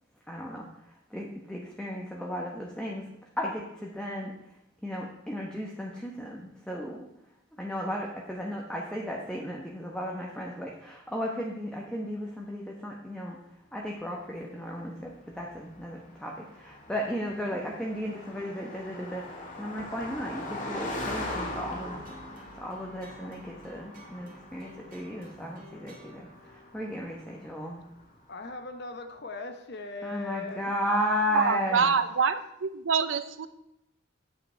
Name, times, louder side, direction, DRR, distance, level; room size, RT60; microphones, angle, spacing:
voice 1, 0.3-3.1 3.4-4.6 4.8-7.0 7.6-13.4 13.7-19.2 19.6-22.1 22.5-27.8 30.0-31.9, equal, 5° left, -2 dB, 1.2 m, -35 dB
Car passing by, 14.4-28.2, left 1 dB, 45° left, 1.8 m, -41 dB
sound 1, 21.7-28.2, right 1 dB, 45° right, 2.4 m, -53 dB
voice 2, 28.3-30.7, left 3 dB, 60° left, 6 dB, 1.0 m, -39 dB
voice 3, 31.3-33.5, right 5 dB, 80° right, 12 dB, 0.7 m, -26 dB
9.1 x 8.0 x 4.5 m, 0.82 s
head